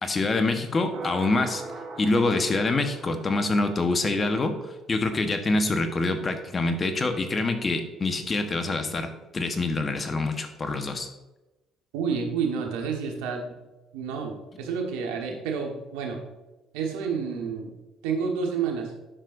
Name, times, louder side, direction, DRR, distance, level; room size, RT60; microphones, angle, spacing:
voice 1, 0.0-1.6 2.0-4.5 4.9-11.1, left 2 dB, 35° left, 6 dB, 1.2 m, -25 dB
sound 1, 0.9-4.3, right 3 dB, 65° right, 1.7 m, -41 dB
voice 2, 11.9-13.6 13.9-16.2 16.7-17.7 18.0-18.9, right 6 dB, 85° right, 2 dB, 1.3 m, -29 dB
10.0 x 6.5 x 2.6 m, 1.0 s
hypercardioid pair, 65°, 0 cm